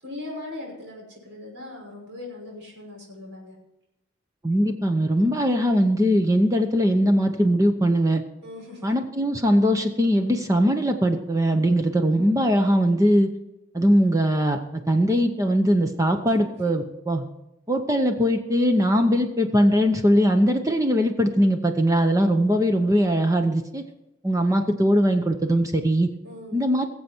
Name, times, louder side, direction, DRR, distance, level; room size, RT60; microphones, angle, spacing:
voice 1, 0.0-3.5 8.4-8.9 26.2-26.6, left 2 dB, 65° right, -2 dB, 5.9 m, -39 dB
voice 2, 4.4-8.2 8.8-13.3 13.7-17.2 17.7-23.8 24.2-26.1 26.5-26.9, equal, 15° right, 5 dB, 0.8 m, -21 dB
20.5 x 7.8 x 4.5 m, 0.92 s
head